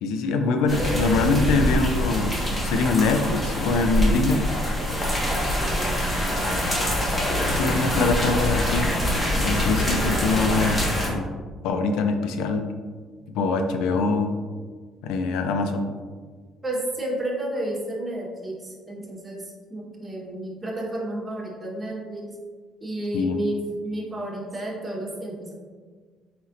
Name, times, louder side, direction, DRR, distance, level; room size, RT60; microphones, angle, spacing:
voice 1, 0.0-4.5 7.5-9.0 9.4-11.3 11.6-12.7 13.3-14.4 15.0-15.9 23.1-23.4, left 3 dB, 85° left, 7 dB, 0.4 m, -24 dB
sound 1, 0.7-11.1, left 1 dB, 25° left, 1.4 m, -24 dB
voice 2, 6.2-6.6 16.6-19.4 19.7-22.3 22.8-25.5, right 1 dB, 20° right, -3 dB, 1.1 m, -31 dB
4.3 x 4.1 x 2.5 m, 1.5 s
cardioid pair, 95°, 0 cm